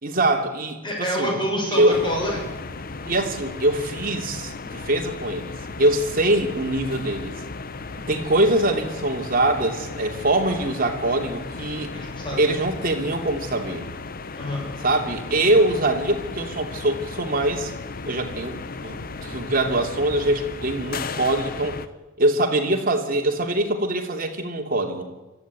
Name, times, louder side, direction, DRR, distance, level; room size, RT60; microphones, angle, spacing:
voice 1, 0.0-1.4 1.7-2.0 3.0-7.4 8.0-11.9 12.4-13.8 14.8-17.7 18.1-21.8 22.2-25.1, right 1 dB, 45° right, 3 dB, 2.8 m, -23 dB
voice 2, 0.8-2.4 11.9-12.6 14.3-14.7, equal, 25° left, -1 dB, 6.9 m, -27 dB
sound 1, 1.9-21.9, left 3 dB, 45° left, 0.9 m, -35 dB
24.0 x 14.0 x 9.2 m, 1.1 s
head